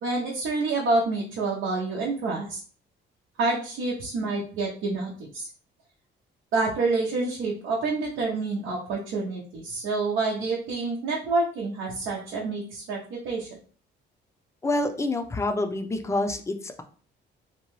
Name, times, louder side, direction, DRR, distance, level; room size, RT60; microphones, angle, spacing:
voice 1, 0.0-2.6 3.4-5.5 6.5-13.6, right 3 dB, 85° right, -3 dB, 0.7 m, -28 dB
voice 2, 14.6-16.8, left 2 dB, 15° left, 6 dB, 0.4 m, -27 dB
2.7 x 2.2 x 3.1 m, 0.43 s
cardioid pair, 90°, 20 cm